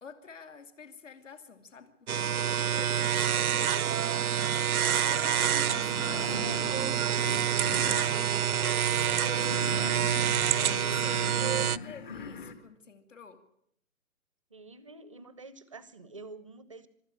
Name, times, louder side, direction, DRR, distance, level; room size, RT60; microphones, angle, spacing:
voice 1, 0.0-4.2 4.5-7.7 8.1-11.3 11.8-13.4, left 5 dB, 60° left, 9 dB, 2.8 m, -48 dB
sound 1, 2.1-11.8, right 9 dB, 90° right, 0.7 m, -27 dB
sound 2, 5.3-12.5, left 5 dB, 35° left, 1.9 m, -40 dB
voice 2, 14.5-16.9, right 3 dB, 25° right, 15 dB, 0.7 m, -48 dB
24.0 x 13.0 x 9.1 m, 0.72 s
hypercardioid pair, 170°, 43 cm